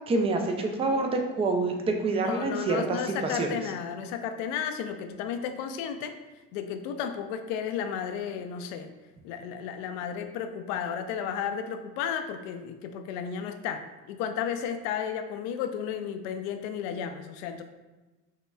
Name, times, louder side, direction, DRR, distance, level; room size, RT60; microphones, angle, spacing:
voice 1, 0.1-3.5, right 3 dB, 15° right, 3 dB, 0.3 m, -27 dB
voice 2, 2.2-6.1 6.5-8.9 9.2-17.6, left 8 dB, 60° left, 7 dB, 0.5 m, -33 dB
5.6 x 3.0 x 2.2 m, 1.1 s
figure-of-eight pair, 55°, 49 cm